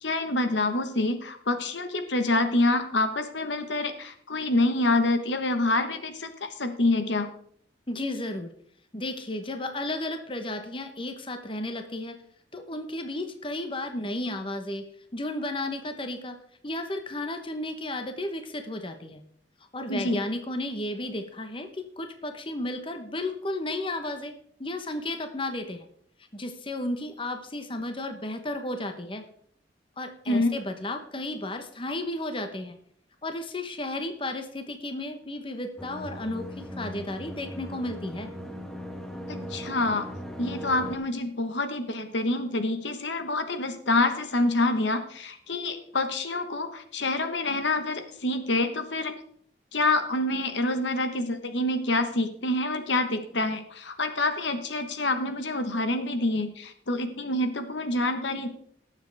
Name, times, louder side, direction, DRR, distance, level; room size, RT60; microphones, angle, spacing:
voice 1, 0.0-7.3 19.9-20.2 30.3-30.5 39.3-40.0 40.4-49.1 49.7-58.5, left 2 dB, 80° left, 8 dB, 1.2 m, -27 dB
voice 2, 7.9-8.5 8.9-12.2 12.5-14.8 15.1-16.4 16.6-19.2 19.7-24.3 24.6-25.9 26.3-29.2 30.0-32.8 33.2-38.3, left 1 dB, 30° left, 6 dB, 1.0 m, -33 dB
sound 1, 35.8-41.0, equal, ahead, 1.1 m, -38 dB
18.5 x 7.4 x 3.5 m, 0.62 s
head